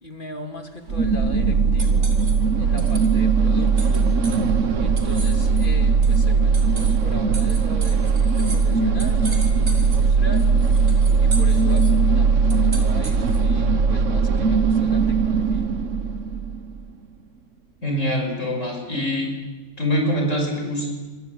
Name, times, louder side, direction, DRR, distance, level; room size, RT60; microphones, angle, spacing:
voice 1, 0.0-2.1 2.5-4.0 4.8-10.5 10.9-15.7, left 1 dB, 45° left, 4 dB, 3.0 m, -39 dB
sound 1, 0.7-13.6, right 3 dB, 65° right, 3.4 m, -39 dB
sound 2, 0.9-16.8, right 5 dB, 80° right, 1.5 m, -19 dB
voice 2, 17.8-19.3 19.8-20.9, equal, 90° left, 2 dB, 6.2 m, -24 dB
26.0 x 22.5 x 8.0 m, 1.3 s
omnidirectional pair, 1.3 m